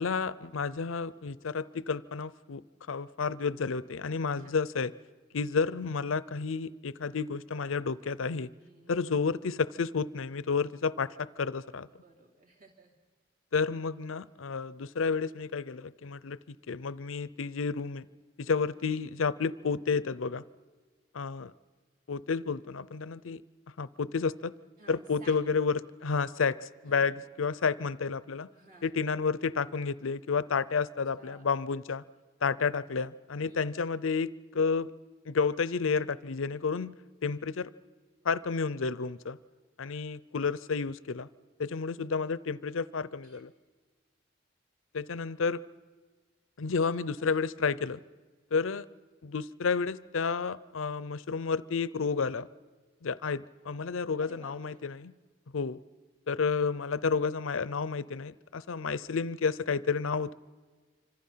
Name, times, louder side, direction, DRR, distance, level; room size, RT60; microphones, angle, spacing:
voice 1, 0.0-2.6 2.9-4.9 5.3-8.5 8.9-11.9 13.5-18.1 18.4-20.4 21.1-21.5 22.1-23.4 23.8-24.5 24.9-28.5 28.8-32.0 32.4-34.9 35.3-37.0 37.2-37.7 38.2-39.4 39.8-41.3 41.6-43.5 44.9-45.6 46.6-48.0 48.5-48.9 49.2-52.5 53.0-55.1 55.5-55.8 56.3-60.3, left 5 dB, 85° left, 18 dB, 0.6 m, -31 dB
voice 2, 8.6-9.2 10.6-10.7 11.9-12.9 18.4-18.7 24.8-25.4 26.9-27.1 28.5-28.9 30.7-30.8 31.2-31.4 33.4-33.6 43.2-43.4 47.3-47.4 54.2-54.9, right 3 dB, 45° right, 0 dB, 3.1 m, -56 dB
26.0 x 25.5 x 5.7 m, 1.4 s
head